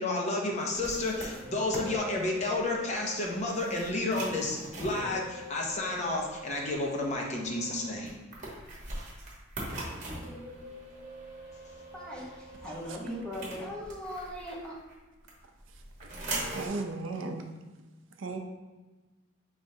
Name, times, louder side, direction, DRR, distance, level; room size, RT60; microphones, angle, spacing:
voice 1, 0.0-8.1, left 2 dB, 35° left, -1 dB, 0.6 m, -31 dB
sound 1, 0.6-14.9 15.3-16.7, right 1 dB, 40° right, 1.1 m, -42 dB
voice 2, 11.9-14.8, equal, 5° left, -6 dB, 0.9 m, -39 dB
voice 3, 16.5-17.4 18.2-18.4, right 3 dB, 70° right, 4 dB, 0.5 m, -35 dB
5.3 x 3.2 x 2.7 m, 1.2 s
head